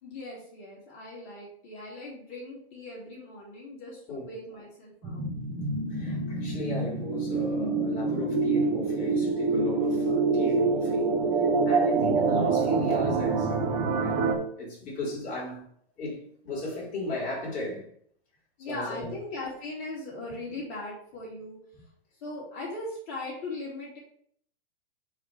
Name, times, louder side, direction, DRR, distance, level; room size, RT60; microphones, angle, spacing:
voice 1, 0.0-5.2 18.6-21.9 22.2-24.0, left 2 dB, 45° left, 2.8 m, -39 dB
sound 1, 5.0-14.3, right 4 dB, 30° right, 1.7 m, -26 dB
voice 2, 5.9-14.2 14.6-15.6 16.0-17.8 18.6-19.1, left 2 dB, 25° left, 3.2 m, -36 dB
9.5 x 3.4 x 5.0 m
supercardioid pair, 160°, 33 cm